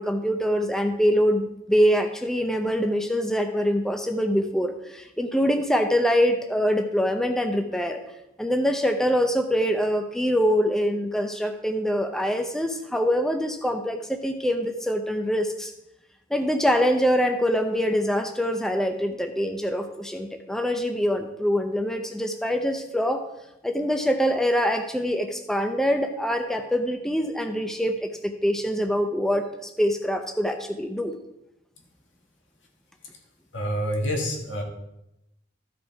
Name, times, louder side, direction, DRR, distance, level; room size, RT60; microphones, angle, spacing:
voice 1, 0.0-8.0 8.4-15.7 16.3-23.2 23.6-31.2, equal, 5° left, 6 dB, 0.5 m, -24 dB
voice 2, 33.5-34.6, equal, 85° left, 1 dB, 2.0 m, -27 dB
13.5 x 5.1 x 4.7 m, 0.87 s
head